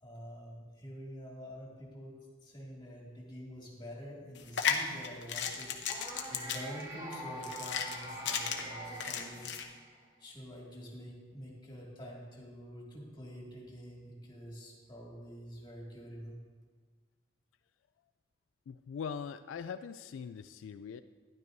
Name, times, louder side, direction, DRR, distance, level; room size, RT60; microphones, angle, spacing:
voice 1, 0.0-2.1 2.4-5.7 6.3-9.5 10.2-16.4, equal, 25° left, -3 dB, 2.1 m, -47 dB
sound 1, 4.4-9.6, left 7 dB, 65° left, 0.8 m, -35 dB
sound 2, 5.9-10.1, right 1 dB, 20° right, 1.3 m, -44 dB
voice 2, 18.7-21.0, left 6 dB, 90° left, 12 dB, 0.3 m, -41 dB
12.5 x 10.5 x 2.7 m, 1.4 s
head